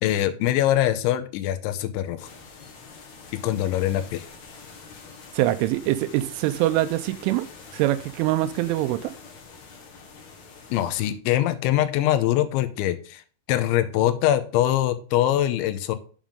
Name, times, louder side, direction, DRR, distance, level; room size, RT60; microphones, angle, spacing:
voice 1, 0.0-2.3 3.4-4.3 10.7-13.2 13.5-16.0, left 12 dB, 85° left, 3.0 m, -23 dB
sound 1, 2.2-11.1, left 4 dB, 55° left, 2.0 m, -45 dB
voice 2, 5.3-7.4 7.7-9.1, right 15 dB, 85° right, 3.1 m, -24 dB
9.0 x 7.3 x 3.6 m
omnidirectional pair, 5.5 m